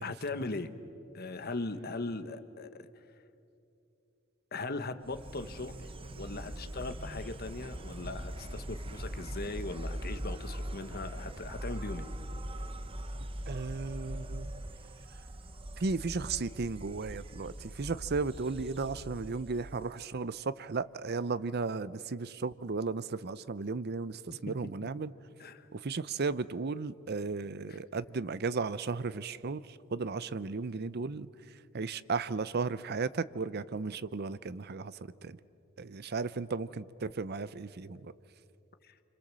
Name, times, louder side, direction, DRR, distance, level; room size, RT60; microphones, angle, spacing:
voice 1, 0.0-0.7 1.1-2.9 4.5-5.8 6.2-12.1 25.4-25.7 27.7-27.8 38.8-38.9, left 3 dB, 50° left, 1.3 m, -39 dB
Insect, 5.0-20.1, right 1 dB, 25° right, 0.9 m, -41 dB
voice 2, 13.5-14.5 15.8-25.1 25.7-31.3 31.7-34.9 35.2-35.4 35.8-38.1, right 4 dB, 50° right, 0.6 m, -35 dB
29.5 x 26.0 x 7.5 m
head